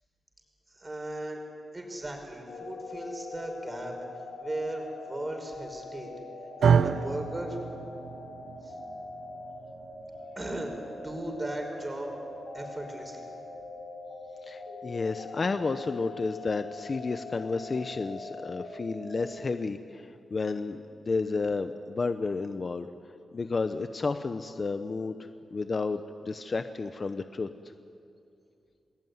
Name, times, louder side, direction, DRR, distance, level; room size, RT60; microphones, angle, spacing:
voice 1, 0.7-1.4 1.7-3.9 4.4-6.1 6.6-7.6 8.6-8.7 10.3-12.2 12.5-13.3, right 1 dB, 20° right, 3 dB, 5.2 m, -37 dB
sound 1, 2.5-19.4, left 2 dB, 75° left, 6.5 m, -42 dB
sound 2, 6.6-14.9, right 7 dB, 80° right, 0.8 m, -32 dB
voice 2, 14.4-22.9 23.3-27.5, left 4 dB, 35° left, 9 dB, 0.8 m, -32 dB
28.5 x 20.5 x 9.6 m, 2.6 s
wide cardioid pair, 135°, 0 cm